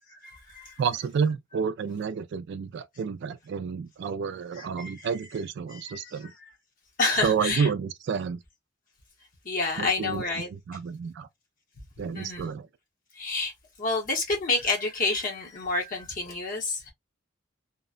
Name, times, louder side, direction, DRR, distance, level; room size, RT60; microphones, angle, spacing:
voice 1, 0.2-0.8 4.5-5.1 5.7-6.3 7.0-7.7 9.4-10.5 12.1-12.5 13.1-13.5 13.8-16.9, left 3 dB, 45° left, 0.9 m, -29 dB
voice 2, 0.8-6.3 7.2-8.4 9.8-10.2 10.5-11.3 12.0-12.7, right 6 dB, 60° right, 0.3 m, -30 dB
2.9 x 2.1 x 2.3 m
head